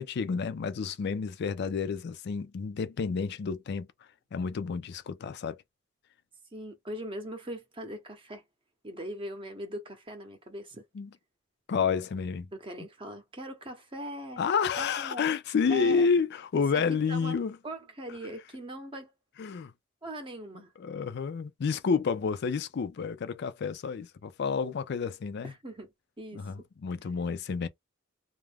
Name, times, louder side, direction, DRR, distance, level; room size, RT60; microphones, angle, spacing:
voice 1, 0.0-3.9 4.3-5.6 10.9-11.1 11.7-12.5 14.4-17.6 19.4-19.7 20.8-25.5 26.3-27.7, left 5 dB, 55° left, 0.4 m, -30 dB
voice 2, 6.5-8.4 8.8-10.8 12.5-14.4 14.8-15.2 15.7-16.1 16.7-16.8 17.1-17.4 17.6-19.1 20.0-20.7 25.4-26.4, equal, 25° right, 0.7 m, -40 dB
2.4 x 2.1 x 3.3 m
head